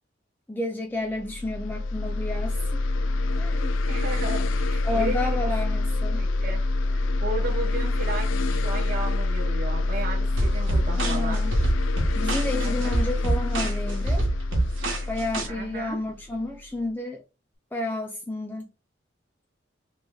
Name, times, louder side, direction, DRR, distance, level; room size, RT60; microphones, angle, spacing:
voice 1, 0.5-2.8 3.4-3.8 4.8-6.3 10.9-11.5 12.2-14.3 15.1-17.2 17.7-18.7, left 2 dB, 10° left, 0.3 m, -31 dB
sound 1, 1.1-16.6, left 2 dB, 85° left, 0.4 m, -26 dB
voice 2, 3.9-5.6 6.2-11.4 12.5-13.0 15.4-16.0, right 2 dB, 45° right, 0.6 m, -35 dB
sound 2, 10.4-15.5, right 2 dB, 85° right, 1.1 m, -27 dB
3.1 x 2.1 x 3.7 m
head